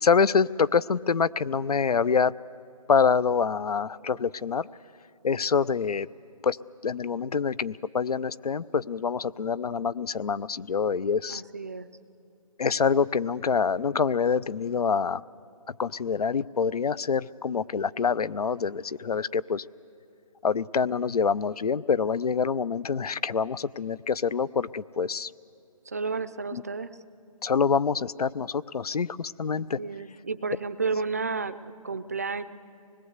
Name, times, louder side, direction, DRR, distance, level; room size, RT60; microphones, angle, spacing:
voice 1, 0.0-2.3 2.9-4.7 5.2-6.1 6.4-6.6 6.8-11.4 12.6-15.2 15.8-19.6 20.4-25.3 26.5-26.6 27.4-29.8, left 6 dB, 90° left, 19 dB, 0.6 m, -26 dB
voice 2, 11.3-11.9 25.9-27.0 29.5-32.4, right 4 dB, 25° right, 13 dB, 0.5 m, -32 dB
25.0 x 20.5 x 8.1 m, 2.6 s
hypercardioid pair, 170°, 19 cm